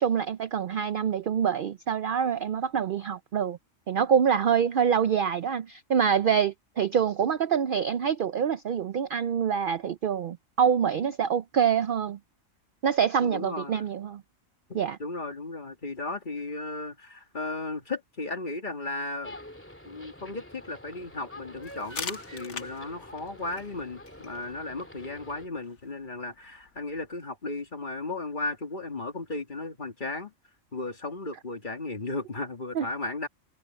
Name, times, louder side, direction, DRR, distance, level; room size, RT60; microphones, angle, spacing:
voice 1, 0.0-3.6 3.9-12.2 12.8-14.2 14.7-15.0 32.7-32.9, right 7 dB, 60° right, 0.6 m, -26 dB
voice 2, 13.2-13.9 14.7-19.4 19.8-30.3 30.7-33.3, left 2 dB, 35° left, 2.2 m, -35 dB
sound 1, 19.2-25.5, left 1 dB, 10° left, 2.5 m, -47 dB
sound 2, 21.6-27.2, left 5 dB, 85° left, 2.0 m, -44 dB
omnidirectional pair, 1.4 m